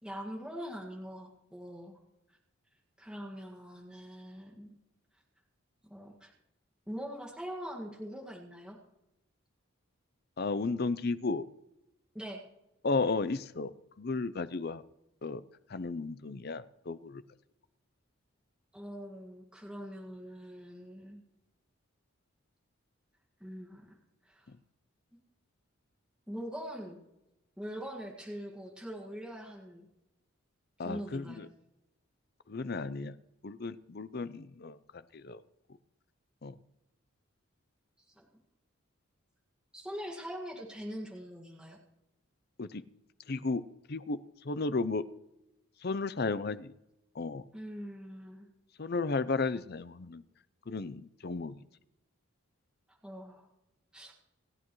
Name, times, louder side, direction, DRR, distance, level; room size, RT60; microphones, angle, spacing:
voice 1, 0.0-2.0 3.0-4.8 5.9-6.3 6.9-8.8 12.1-12.4 18.7-21.2 23.4-24.0 24.2-24.5 26.3-27.0 27.6-29.9 30.8-31.4 38.2-38.3 39.7-41.8 47.5-48.5 53.0-53.5 53.9-54.1, equal, 5° right, -3 dB, 1.9 m, -43 dB
voice 2, 10.4-11.4 12.8-13.7 14.0-14.8 15.2-15.4 15.7-17.2 30.8-31.5 32.5-33.1 33.4-34.8 35.1-35.4 36.4-36.5 42.6-42.8 43.3-43.6 43.9-44.2 44.4-45.0 45.8-46.7 47.2-47.4 48.8-50.2 50.7-51.6, left 3 dB, 50° left, 14 dB, 0.6 m, -33 dB
28.5 x 9.9 x 3.1 m, 0.92 s
head